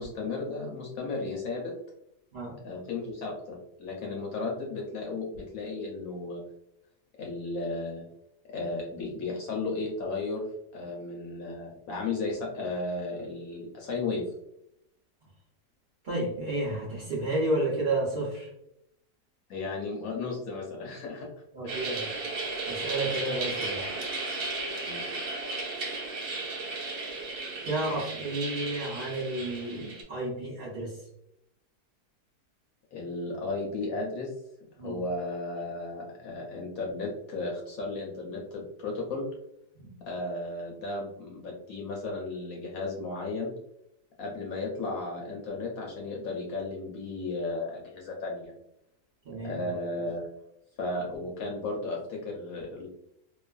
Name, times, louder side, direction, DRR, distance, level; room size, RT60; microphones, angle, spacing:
voice 1, 0.0-1.7 2.6-6.4 7.2-8.0 8.4-10.4 10.7-14.3 19.5-21.3 21.6-21.8 24.8-25.1 32.9-34.3 34.8-39.2 40.0-43.5 44.2-48.5 49.4-50.3 50.8-52.9, left 3 dB, 70° left, -1 dB, 0.9 m, -34 dB
voice 2, 16.0-18.5 21.5-23.9 27.6-31.0 34.8-35.0 39.7-39.9 49.2-49.7, right 2 dB, 55° right, -8 dB, 0.5 m, -32 dB
sound 1, 21.7-30.0, right 3 dB, 70° right, 1.3 m, -35 dB
2.6 x 2.4 x 2.2 m, 0.77 s
omnidirectional pair, 1.7 m